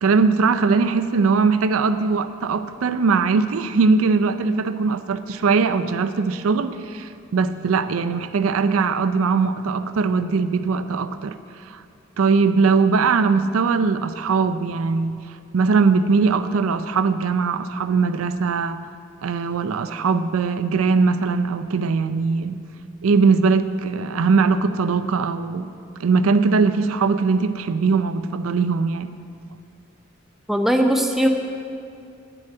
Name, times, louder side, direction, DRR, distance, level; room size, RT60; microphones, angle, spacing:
voice 1, 0.0-11.4 11.7-11.8 12.2-15.2 15.5-18.8 19.2-22.6 23.0-25.7 26.0-29.1, right 4 dB, 75° right, 11 dB, 0.4 m, -20 dB
voice 2, 30.5-31.3, equal, ahead, 3 dB, 0.6 m, -19 dB
9.3 x 7.1 x 8.7 m, 2.5 s
head